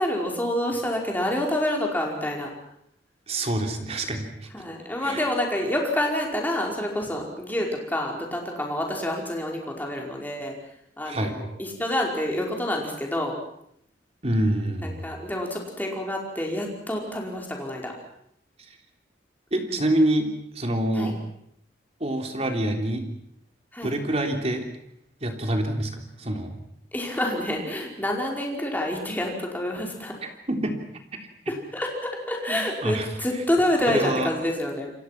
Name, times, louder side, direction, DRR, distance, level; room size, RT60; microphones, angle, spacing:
voice 1, 0.0-2.5 4.5-10.5 11.0-13.4 14.8-17.9 19.6-19.8 20.9-21.2 23.7-23.9 26.9-30.1 31.5-34.9, left 1 dB, 10° left, 0 dB, 5.1 m, -28 dB
voice 2, 3.3-4.5 5.0-5.2 11.0-11.3 14.2-15.1 19.5-21.2 22.0-23.1 23.8-24.7 25.2-26.6 30.5-30.8 32.5-33.1 33.9-34.3, right 1 dB, 35° right, 4 dB, 3.5 m, -26 dB
28.5 x 24.0 x 6.0 m, 0.72 s
head